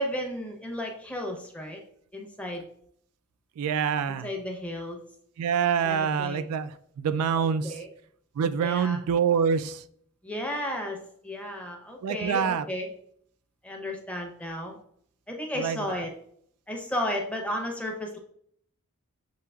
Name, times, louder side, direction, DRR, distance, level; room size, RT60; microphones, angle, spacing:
voice 1, 0.0-1.8 2.1-2.6 4.2-5.0 5.8-6.5 7.3-7.9 8.6-9.0 10.2-12.9 13.6-14.8 15.3-16.1 16.7-18.2, equal, 5° left, 1 dB, 0.7 m, -33 dB
voice 2, 3.6-4.3 5.4-7.8 8.4-9.8 12.0-12.6 15.6-16.0, right 7 dB, 80° right, 12 dB, 0.3 m, -26 dB
7.0 x 2.8 x 2.3 m, 0.67 s
head